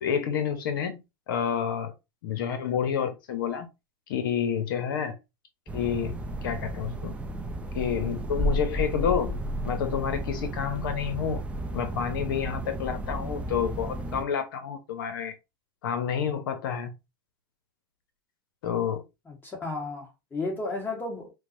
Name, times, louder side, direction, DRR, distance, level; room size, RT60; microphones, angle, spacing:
voice 1, 0.0-1.0 1.3-1.9 2.2-3.7 4.1-5.2 5.7-6.1 6.4-7.1 7.7-9.4 9.6-11.4 11.7-15.3 15.8-16.9 18.6-19.0, left 8 dB, 75° left, 0.6 m, -29 dB
sound 1, 5.7-14.2, right 1 dB, 10° right, 0.5 m, -33 dB
voice 2, 19.3-21.3, left 2 dB, 15° left, 1.2 m, -33 dB
4.5 x 2.0 x 2.6 m
hypercardioid pair, 110°, 12 cm